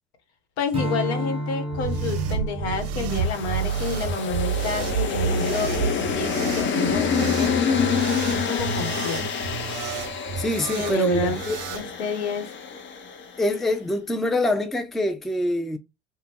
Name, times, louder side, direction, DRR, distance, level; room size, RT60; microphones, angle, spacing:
voice 1, 0.6-7.5 8.3-9.2 10.7-11.4 11.7-12.5, left 4 dB, 80° left, 1.1 m, -29 dB
Strum, 0.7-5.4, equal, 15° right, 1.1 m, -33 dB
sound 1, 1.7-11.8, right 6 dB, 50° right, 0.6 m, -29 dB
sound 2, 3.1-13.4, left 6 dB, 35° left, 0.8 m, -27 dB
voice 2, 10.4-11.6 13.4-15.8, left 1 dB, ahead, 0.4 m, -25 dB
2.8 x 2.2 x 3.5 m
hypercardioid pair, 85°, 32 cm